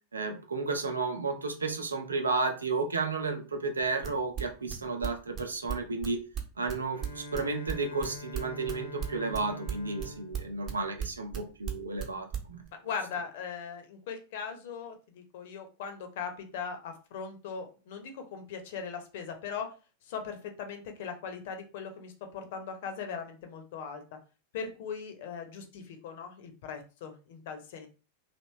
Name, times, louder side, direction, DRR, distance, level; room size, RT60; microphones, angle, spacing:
voice 1, 0.1-6.2 6.6-12.6, right 3 dB, 75° right, 4 dB, 0.7 m, -32 dB
sound 1, 4.0-7.4 7.7-11.4 11.7-12.1 12.3-12.7, right 8 dB, 30° right, 0.9 m, -35 dB
Bowed string instrument, 6.9-11.7, left 2 dB, 80° left, 1.0 m, -46 dB
voice 2, 12.7-19.7 20.0-24.2 24.5-27.9, left 6 dB, 55° left, 5 dB, 0.8 m, -39 dB
3.0 x 3.0 x 3.2 m, 0.34 s
figure-of-eight pair, 90°, 0 cm